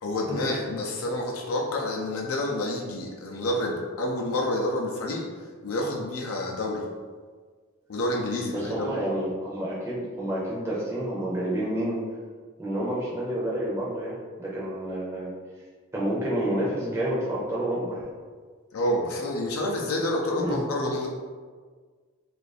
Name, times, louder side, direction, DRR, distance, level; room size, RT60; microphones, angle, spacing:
voice 1, 0.0-6.8 7.9-9.0 18.7-21.1, left 1 dB, 85° left, -2 dB, 0.5 m, -28 dB
voice 2, 8.5-12.0 12.6-15.3 15.9-18.1 20.4-20.6, right 1 dB, 10° right, -6 dB, 0.5 m, -29 dB
2.7 x 2.5 x 4.0 m, 1.5 s
head